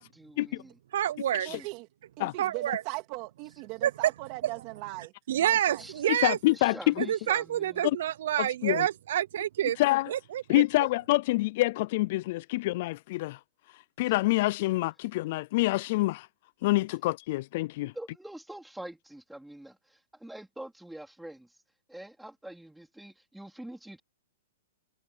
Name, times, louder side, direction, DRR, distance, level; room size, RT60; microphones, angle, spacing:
voice 1, 0.0-0.8 1.5-1.7 5.8-6.1 6.5-7.9 17.8-21.6 21.9-24.0, right 1 dB, ahead, 3.8 m, -45 dB
voice 2, 0.9-1.5 2.4-2.8 3.8-3.9 5.3-6.4 7.0-9.8 10.1-10.6, right 11 dB, 60° right, 0.6 m, -28 dB
voice 3, 1.4-1.9 2.2-5.8, right 23 dB, 35° right, 3.0 m, -40 dB
voice 4, 6.2-7.0 8.6-8.9 9.8-10.1 10.5-13.4 14.0-16.3 16.6-17.9, left 19 dB, 40° left, 0.3 m, -26 dB
hypercardioid pair, 160°, 0 cm